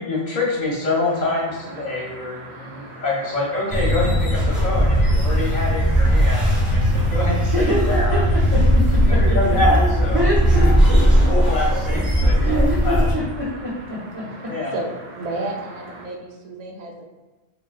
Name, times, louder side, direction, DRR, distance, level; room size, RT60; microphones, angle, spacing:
voice 1, 0.0-8.2 9.0-10.3 11.0-12.4 12.8-13.1 14.5-14.7, left 2 dB, 50° left, -4 dB, 0.7 m, -26 dB
sound 1, 0.9-16.1, right 1 dB, 75° right, 0.9 m, -41 dB
sound 2, 3.7-13.1, equal, ahead, 0.7 m, -18 dB
voice 2, 7.5-9.6 10.1-11.3 12.4-14.5, equal, 35° right, -8 dB, 0.8 m, -26 dB
voice 3, 14.7-17.0, right 2 dB, 60° right, 1 dB, 0.4 m, -31 dB
3.7 x 2.0 x 2.4 m, 1.2 s
omnidirectional pair, 1.1 m